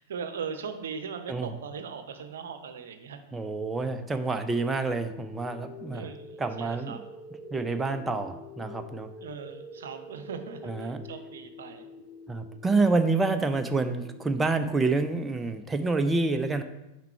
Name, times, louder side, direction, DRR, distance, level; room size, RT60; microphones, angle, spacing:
voice 1, 0.0-3.2 5.9-7.0 9.2-11.9, right 6 dB, 60° right, 9 dB, 0.7 m, -39 dB
voice 2, 3.3-6.1 6.4-6.9 7.5-9.1 10.6-11.0 12.3-16.6, right 3 dB, 10° right, 8 dB, 0.4 m, -28 dB
sound 1, 4.9-14.9, left 2 dB, 30° left, 1.2 m, -46 dB
5.9 x 4.6 x 4.4 m, 0.94 s
figure-of-eight pair, 90°, 0 cm